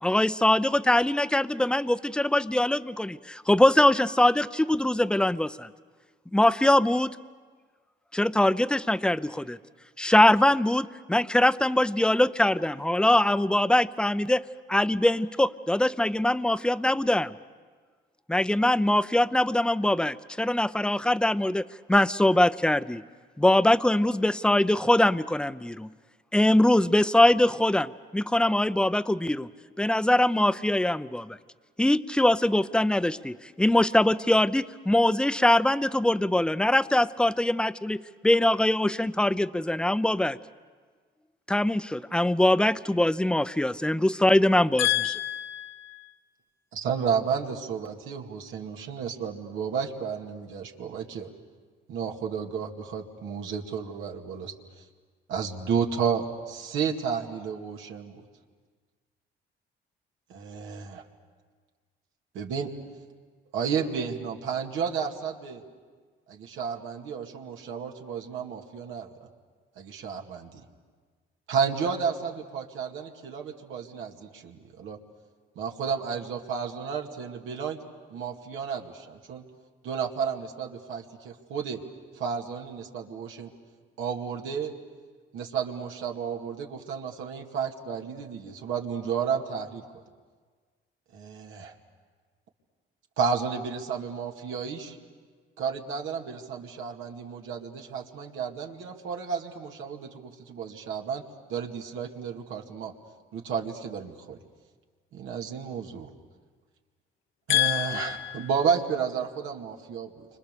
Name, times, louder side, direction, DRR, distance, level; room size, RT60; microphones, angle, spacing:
voice 1, 0.0-5.7 6.3-7.2 8.1-9.6 10.0-17.3 18.3-23.0 23.4-25.9 26.3-29.5 29.8-31.4 31.8-40.4 41.5-44.9, left 1 dB, 5° left, 14 dB, 0.7 m, -23 dB
voice 2, 44.8-46.2 107.5-108.5, left 14 dB, 75° left, 7 dB, 1.2 m, -27 dB
voice 3, 46.7-51.3 51.9-54.5 55.3-58.2 60.3-61.0 62.3-62.7 63.5-65.6 66.3-69.1 69.8-70.6 71.5-75.0 75.6-77.8 78.1-79.4 79.8-81.8 82.1-83.5 84.0-84.7 85.3-89.8 91.1-91.7 93.2-95.0 95.6-101.2 101.5-102.9 103.3-104.4 105.1-106.1 107.5-110.3, right 6 dB, 90° right, 1 dB, 2.3 m, -32 dB
29.5 x 25.5 x 6.9 m, 1.5 s
cardioid pair, 90°, 20 cm